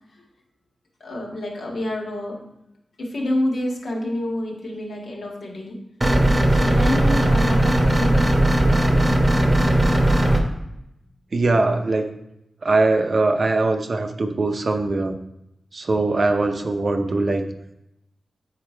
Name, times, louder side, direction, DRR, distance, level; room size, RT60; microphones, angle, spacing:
voice 1, 1.0-2.4 3.0-5.8 6.5-9.0, left 1 dB, 70° left, -1 dB, 1.7 m, -28 dB
sound 1, 6.0-10.4, right 1 dB, 25° right, 0.9 m, -18 dB
voice 2, 11.3-12.1 12.6-15.2 15.7-17.5, right 2 dB, 45° right, 5 dB, 0.7 m, -21 dB
8.7 x 4.1 x 4.5 m, 0.84 s
wide cardioid pair, 110°, 0 cm